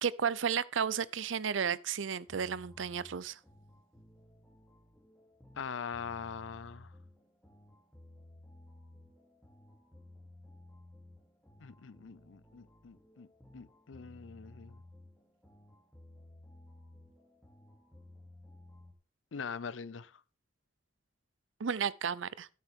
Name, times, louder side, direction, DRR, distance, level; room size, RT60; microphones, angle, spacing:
voice 1, 0.0-3.4 21.6-22.5, right 7 dB, 90° right, 0.6 m, -33 dB
sound 1, 2.3-18.9, left 1 dB, ahead, 2.9 m, -56 dB
voice 2, 5.6-6.9 11.6-13.3 13.5-14.8 19.3-20.1, left 6 dB, 90° left, 0.6 m, -42 dB
13.5 x 8.3 x 3.6 m
head